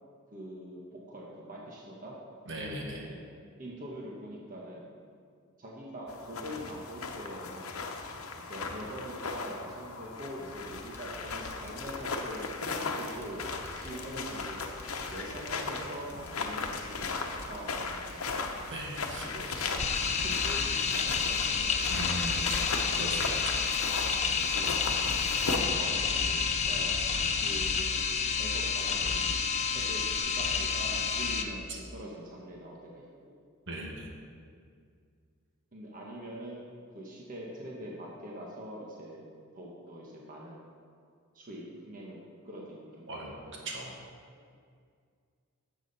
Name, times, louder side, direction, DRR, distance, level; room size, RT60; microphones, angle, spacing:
voice 1, 0.3-2.1 2.6-3.2 3.6-4.9 5.6-7.8 8.4-14.7 15.1-18.5 19.3-19.5 19.8-22.0 24.1-24.8 25.4-26.9 27.4-28.0 28.4-33.4 35.7-39.3 39.5-40.7 41.3-42.2 42.4-43.1 43.4-43.7, equal, 40° right, -3 dB, 1.4 m, -43 dB
voice 2, 2.5-3.0 18.7-19.6 21.9-22.5 22.9-23.6 31.7-31.8 33.7-34.1 43.1-43.3 43.6-44.0, right 1 dB, 60° right, -1 dB, 1.5 m, -38 dB
sound 1, 6.1-25.6, left 4 dB, 90° left, 0.9 m, -37 dB
sound 2, 10.3-10.6 10.9-22.5 22.8-23.0 23.4-23.5, left 1 dB, 10° left, 1.1 m, -51 dB
sound 3, 19.8-31.4, left 5 dB, 30° left, 0.6 m, -29 dB
12.0 x 7.5 x 4.2 m, 2.2 s
head